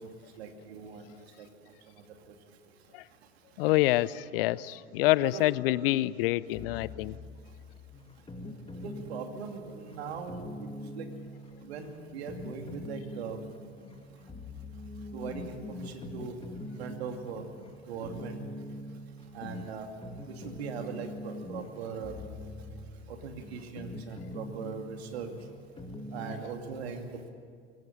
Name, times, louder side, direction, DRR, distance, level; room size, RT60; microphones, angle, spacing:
voice 1, 0.0-1.5 1.9-2.3 5.2-5.4 8.8-11.1 11.6-13.4 15.1-16.3 16.8-17.5 17.9-18.4 19.3-19.9 20.3-22.1 23.1-25.3 26.1-27.3, right 6 dB, 70° right, 5 dB, 2.8 m, -40 dB
voice 2, 3.6-7.2, left 17 dB, 60° left, 20 dB, 0.7 m, -27 dB
sound 1, 6.5-26.4, left 1 dB, 15° left, 2.1 m, -43 dB
23.0 x 17.0 x 9.9 m, 2.2 s
figure-of-eight pair, 75°, 33 cm